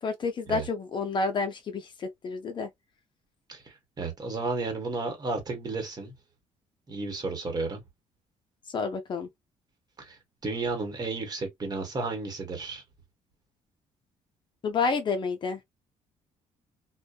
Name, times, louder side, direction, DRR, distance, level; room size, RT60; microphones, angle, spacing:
voice 1, 0.0-2.7 8.7-9.3 14.6-15.6, left 4 dB, 40° left, 0.5 m, -29 dB
voice 2, 3.5-6.1 6.9-7.8 10.0-12.8, right 3 dB, 30° right, 1.1 m, -33 dB
2.6 x 2.1 x 2.2 m
cardioid pair, 120°, 13 cm